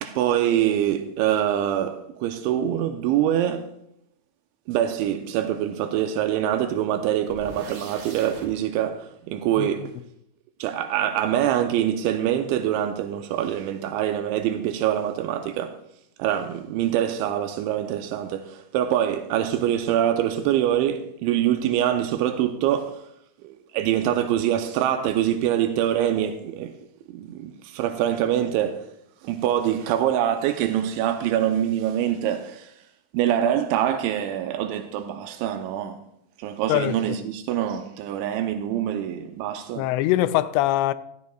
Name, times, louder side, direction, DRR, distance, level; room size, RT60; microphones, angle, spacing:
voice 1, 0.0-3.7 4.7-9.9 10.6-15.8 16.2-23.0 23.4-26.8 27.1-28.8 29.2-32.7 33.1-36.0 36.4-39.9, right 11 dB, 85° right, 2.9 m, -24 dB
sound 1, 7.3-8.5, right 3 dB, 70° right, 4.2 m, -41 dB
voice 2, 36.7-37.2 39.8-40.9, left 14 dB, 85° left, 2.7 m, -22 dB
14.0 x 12.5 x 2.3 m
omnidirectional pair, 5.3 m